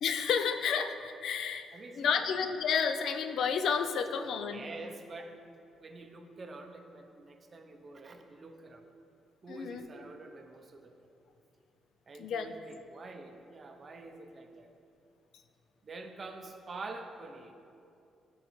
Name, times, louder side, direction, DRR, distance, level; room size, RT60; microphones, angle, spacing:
voice 1, 0.0-1.6 2.0-4.6 9.5-9.8 12.2-12.5, left 6 dB, 70° left, 8 dB, 0.3 m, -31 dB
voice 2, 1.7-2.3 4.5-5.4 5.8-8.8 9.4-11.1 12.1-14.7 15.8-17.5, right 3 dB, 40° right, 5 dB, 0.5 m, -47 dB
9.7 x 3.6 x 3.1 m, 2.6 s
cardioid pair, 90°, 0 cm